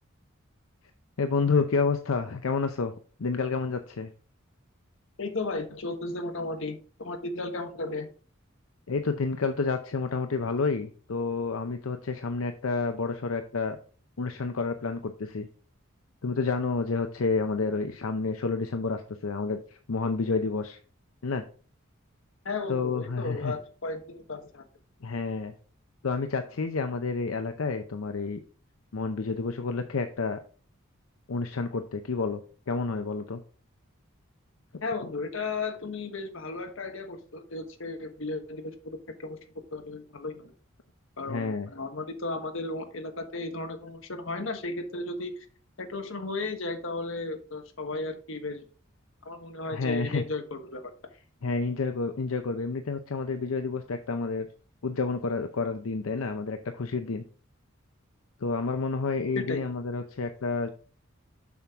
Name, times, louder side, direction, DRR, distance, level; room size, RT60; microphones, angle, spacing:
voice 1, 1.2-2.9 3.2-4.1 8.9-13.8 14.2-15.5 16.2-20.8 21.2-21.4 22.7-23.5 25.0-25.5 26.0-28.4 28.9-30.4 31.3-33.4 41.3-41.7 49.7-50.2 51.4-54.5 54.8-57.2 58.4-60.7, left 4 dB, 85° left, 7 dB, 0.6 m, -29 dB
voice 2, 5.2-8.1 22.4-24.6 34.8-39.4 39.7-40.5 41.2-45.5 45.8-48.7 49.2-50.9 59.3-59.6, left 3 dB, 65° left, 6 dB, 1.2 m, -35 dB
7.3 x 6.0 x 3.6 m, 0.40 s
head